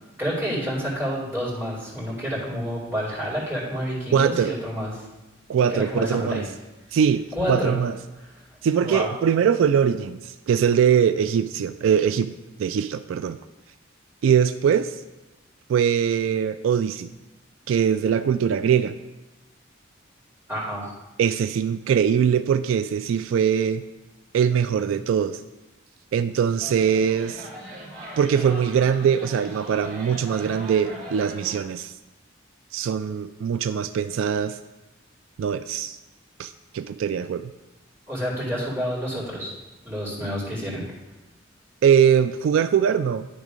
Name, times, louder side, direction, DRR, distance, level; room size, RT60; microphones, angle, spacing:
voice 1, 0.2-5.0 5.7-6.4 7.3-7.7 8.2-8.4 8.8-9.1 20.5-20.9 38.1-39.5 39.8-40.8, equal, 10° right, -8 dB, 2.5 m, -29 dB
voice 2, 4.1-4.6 5.5-6.4 6.9-7.9 8.6-12.3 12.6-13.4 14.2-14.9 15.7-17.1 17.7-18.9 21.2-23.8 24.3-25.4 26.1-27.5 28.2-31.9 32.7-34.6 35.4-36.0 36.4-37.5 41.8-43.3, right 8 dB, 80° right, 11 dB, 0.3 m, -22 dB
sound 1, 26.6-31.6, right 1 dB, 45° right, 1.9 m, -40 dB
10.5 x 3.6 x 5.0 m, 1.1 s
head